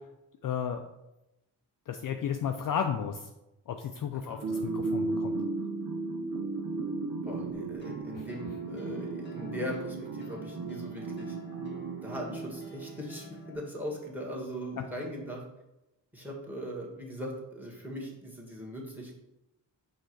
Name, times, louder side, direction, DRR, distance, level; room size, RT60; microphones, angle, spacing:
voice 1, 0.4-0.8 1.9-3.3 3.7-5.3 8.2-8.3, left 8 dB, 50° left, 5 dB, 0.5 m, -33 dB
voice 2, 4.1-4.7 7.2-11.4 12.0-15.4 16.1-19.2, equal, 5° right, -1 dB, 1.6 m, -40 dB
sound 1, 4.4-13.2, right 3 dB, 50° right, 0.7 m, -35 dB
sound 2, 7.8-13.6, equal, 25° left, 0.8 m, -49 dB
4.5 x 2.6 x 4.5 m, 0.92 s
supercardioid pair, 50°, 45 cm